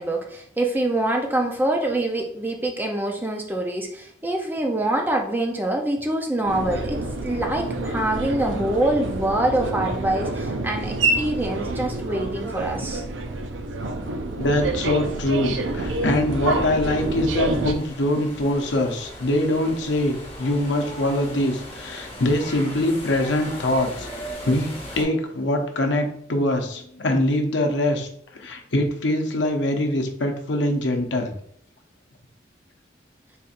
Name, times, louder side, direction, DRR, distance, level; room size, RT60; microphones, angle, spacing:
voice 1, 0.0-13.0, right 1 dB, 10° right, 2 dB, 0.5 m, -25 dB
sound 1, 6.5-17.7, right 2 dB, 90° right, 0.5 m, -28 dB
voice 2, 14.3-24.1 24.4-28.1 28.4-31.3, left 1 dB, 80° left, 4 dB, 0.7 m, -23 dB
sound 2, 14.4-25.0, equal, 30° left, 1.2 m, -39 dB
4.1 x 4.0 x 2.5 m, 0.67 s
head